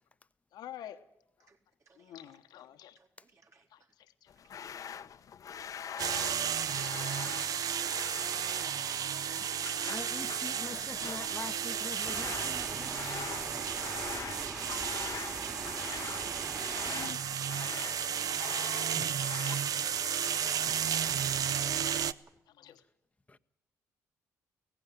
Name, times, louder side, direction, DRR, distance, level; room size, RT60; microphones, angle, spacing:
voice 1, 0.5-1.0 2.0-3.0 3.7-4.8 5.7-6.0 7.3-7.5 8.3-8.7 9.0-9.1 9.6-10.0 10.6-10.7 11.4-11.5 13.7-14.0 15.9-17.5 18.1-18.9 19.7-19.8 21.0-21.1 21.5-21.7 22.1-22.2 22.6-22.8, left 11 dB, 75° left, 1.2 m, -51 dB
voice 2, 1.9-2.7 3.0-3.9 4.4-4.5 4.9-5.1 9.9-10.2 19.7-19.8, right 3 dB, 45° right, 4.2 m, -65 dB
sound 1, 4.3-19.6, left 8 dB, 55° left, 0.8 m, -45 dB
sound 2, 6.0-22.1, right 8 dB, 60° right, 0.7 m, -33 dB
voice 3, 9.9-13.6 18.9-19.2 23.3-23.4, left 3 dB, 20° left, 0.9 m, -45 dB
sound 3, 12.0-17.1, right 2 dB, 20° right, 2.3 m, -43 dB
17.5 x 15.5 x 10.0 m
supercardioid pair, 70°, 7 cm